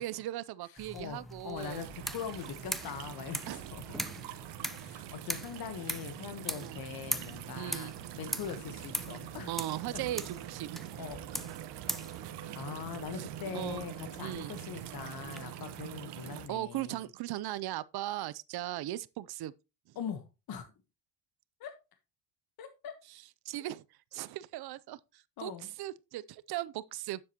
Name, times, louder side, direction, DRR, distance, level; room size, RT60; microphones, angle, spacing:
voice 1, 0.0-1.9 3.5-3.7 6.5-6.8 7.6-8.0 9.5-10.9 13.2-13.3 13.5-13.8 14.2-14.5 16.5-19.5 23.5-23.8 24.1-25.5 25.8-27.2, right 14 dB, 65° right, 0.6 m, -38 dB
voice 2, 0.6-3.8 4.8-9.5 9.9-10.0 11.0-11.2 12.5-17.0 19.9-20.7 21.6-21.7 22.6-22.9 25.4-25.7, left 8 dB, 60° left, 1.3 m, -42 dB
sound 1, 0.8-15.4, equal, ahead, 0.8 m, -42 dB
sound 2, 1.6-16.5, right 11 dB, 90° right, 1.1 m, -44 dB
9.4 x 7.6 x 2.9 m
cardioid pair, 95°, 41 cm